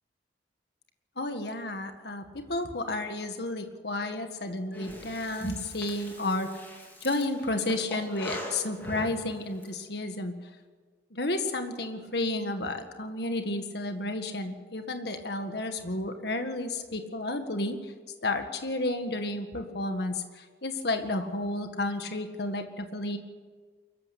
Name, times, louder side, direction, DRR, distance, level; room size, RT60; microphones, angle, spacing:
voice 1, 1.2-6.6 7.0-10.3 11.1-17.9 18.2-23.2, left 2 dB, 60° left, 6 dB, 1.8 m, -32 dB
Breathing, 4.7-9.7, left 1 dB, 10° left, 3.8 m, -42 dB
23.5 x 15.0 x 8.5 m, 1.5 s
head